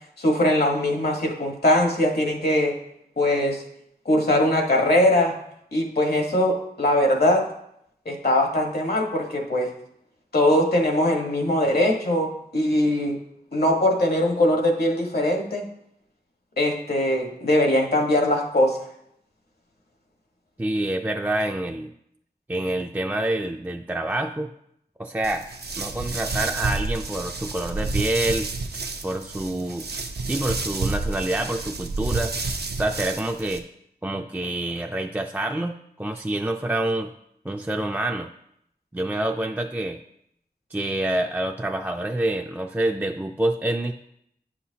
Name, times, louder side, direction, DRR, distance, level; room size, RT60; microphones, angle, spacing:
voice 1, 0.2-2.7 3.2-3.6 4.0-5.4 5.7-7.4 8.0-9.7 10.3-13.2 13.5-15.6 16.6-18.8, left 1 dB, 75° left, 1 dB, 1.3 m, -21 dB
voice 2, 20.6-21.9 22.5-24.5 25.0-25.5 25.8-28.5 29.0-29.9 30.3-32.3 32.7-33.7 34.0-37.1 37.4-38.3 38.9-40.0 40.7-43.9, right 1 dB, 10° right, 3 dB, 0.3 m, -27 dB
sound 1, 25.2-33.6, right 3 dB, 80° right, 0.6 m, -30 dB
9.5 x 5.7 x 2.8 m, 0.76 s
wide cardioid pair, 45°, 16 cm